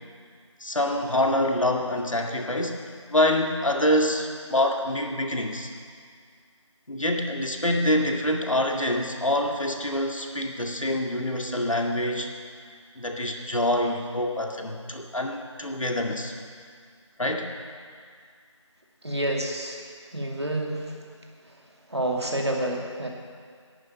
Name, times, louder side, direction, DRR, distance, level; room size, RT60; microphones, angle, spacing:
voice 1, 0.6-2.8 3.1-5.7 6.9-12.3 13.0-16.3 17.2-17.5, left 1 dB, 85° left, 2 dB, 2.0 m, -26 dB
voice 2, 19.0-19.8 20.1-20.9 21.9-23.1, right 1 dB, 55° right, 0 dB, 2.3 m, -28 dB
11.5 x 9.2 x 8.6 m, 2.1 s
figure-of-eight pair, 180°, 16 cm